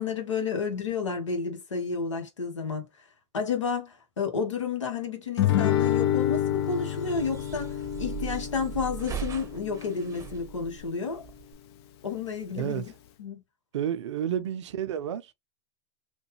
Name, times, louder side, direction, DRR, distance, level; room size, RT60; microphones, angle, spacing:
voice 1, 0.0-2.9 3.3-11.3 12.0-12.8 13.2-13.4 14.3-14.4, left 5 dB, 90° left, 1.1 m, -31 dB
Guitar, 5.4-10.4, left 11 dB, 60° left, 0.6 m, -28 dB
sound 1, 6.6-11.5, right 9 dB, 20° right, 0.7 m, -39 dB
voice 2, 12.6-12.9 13.7-15.3, right 10 dB, 75° right, 0.5 m, -31 dB
3.1 x 2.3 x 3.0 m
hypercardioid pair, 100°, 15 cm